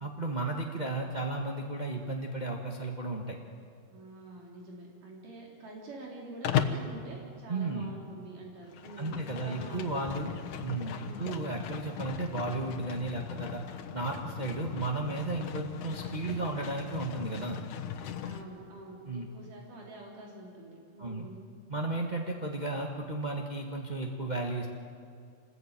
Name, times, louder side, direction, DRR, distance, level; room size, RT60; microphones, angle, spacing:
voice 1, 0.0-3.4 7.5-7.9 9.0-10.3 10.6-13.6 13.9-17.6 19.1-19.3 21.0-21.2 21.7-24.7, right 2 dB, 45° right, 0 dB, 0.5 m, -34 dB
voice 2, 3.9-10.4 10.9-11.3 18.2-21.5, right 2 dB, 75° right, -2 dB, 5.3 m, -47 dB
Livestock farm animals working animals, 6.4-6.9 8.6-18.4, left 9 dB, 70° left, 2.7 m, -37 dB
27.0 x 20.5 x 9.0 m, 2.3 s
omnidirectional pair, 3.8 m